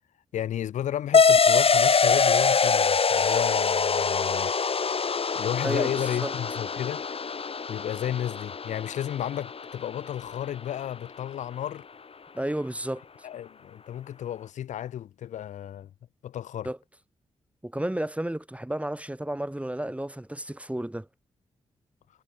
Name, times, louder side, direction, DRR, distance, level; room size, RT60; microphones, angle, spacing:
voice 1, 0.3-4.8 5.3-7.1 7.7-11.8 13.2-15.9 16.2-16.7, left 11 dB, 80° left, 4.4 m, -33 dB
sound 1, 1.1-10.2, left 5 dB, 50° left, 2.8 m, -24 dB
voice 2, 5.6-6.3 12.3-13.3 16.6-16.8 17.6-21.1, right 1 dB, 10° right, 7.7 m, -32 dB
supercardioid pair, 40°, 12 cm